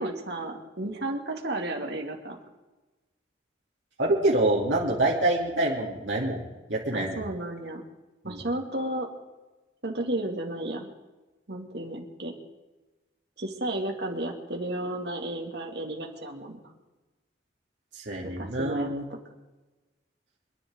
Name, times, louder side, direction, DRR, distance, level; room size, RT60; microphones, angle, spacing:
voice 1, 0.0-2.4 6.9-7.8 8.2-9.1 9.8-10.9 11.5-12.3 13.4-16.6 18.2-18.9, right 1 dB, 65° right, 2 dB, 2.3 m, -33 dB
voice 2, 4.0-6.4 6.7-7.2 8.2-8.4 17.9-19.0, right 2 dB, 85° right, -4 dB, 3.0 m, -26 dB
27.0 x 10.5 x 3.8 m, 1.2 s
head